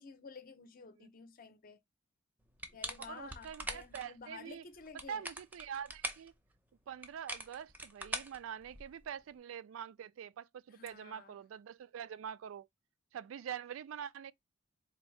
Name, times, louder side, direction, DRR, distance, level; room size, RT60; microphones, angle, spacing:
voice 1, 0.0-1.8 2.7-5.3 10.7-11.4, left 5 dB, 45° left, 0.6 m, -52 dB
sound 1, 2.6-4.0 4.8-6.3 7.0-9.0, right 1 dB, 10° right, 0.6 m, -42 dB
voice 2, 3.0-4.6 5.1-6.3 6.9-12.7 13.1-14.3, right 8 dB, 80° right, 0.3 m, -45 dB
3.9 x 2.6 x 3.1 m
head